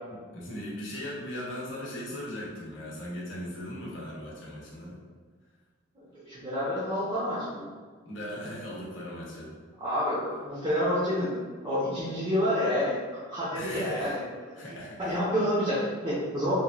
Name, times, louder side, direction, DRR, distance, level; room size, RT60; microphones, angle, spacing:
voice 1, 0.3-5.0 8.1-9.6 13.5-14.2 14.5-15.2, left 1 dB, 60° left, -5 dB, 0.7 m, -38 dB
voice 2, 6.1-7.7 9.8-11.3 11.6-12.9 13.3-14.2 14.6-16.5, equal, 25° right, -10 dB, 0.6 m, -28 dB
3.0 x 2.2 x 2.4 m, 1.5 s
head